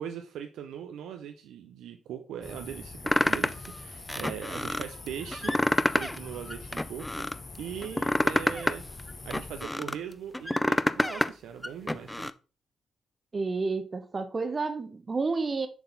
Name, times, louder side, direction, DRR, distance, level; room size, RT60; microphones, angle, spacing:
voice 1, 0.0-7.3 7.6-8.8 9.2-12.3, right 9 dB, 75° right, 0.4 m, -40 dB
sound 1, 2.4-9.7, left 3 dB, 35° left, 1.1 m, -44 dB
sound 2, 3.1-3.7 4.1-4.8 5.3-6.2 6.5-7.4 7.8-10.0 10.3-11.3 11.6-12.3, left 1 dB, 15° left, 0.4 m, -27 dB
voice 2, 13.3-15.7, right 4 dB, 40° right, 0.9 m, -30 dB
7.0 x 3.9 x 3.9 m
hypercardioid pair, 40°, 0 cm